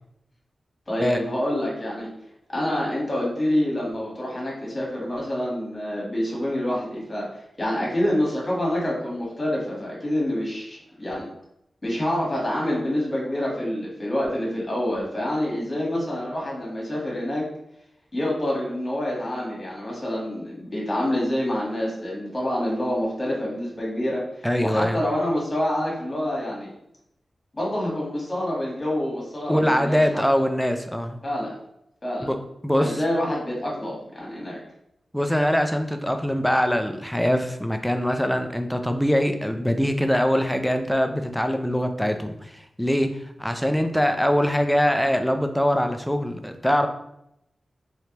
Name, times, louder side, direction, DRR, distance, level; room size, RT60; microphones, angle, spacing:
voice 1, 0.9-2.1 2.5-7.3 7.6-11.3 11.8-17.4 18.1-24.2 24.6-26.7 27.5-30.2 31.2-31.5 32.0-32.3 32.8-34.6, left 1 dB, 25° left, -4 dB, 1.4 m, -27 dB
voice 2, 24.4-25.0 29.5-31.2 32.2-32.4 32.6-33.0 35.1-43.1 43.4-46.9, equal, 5° left, 6 dB, 0.3 m, -23 dB
3.2 x 3.1 x 2.9 m, 0.78 s
wide cardioid pair, 115°, 0 cm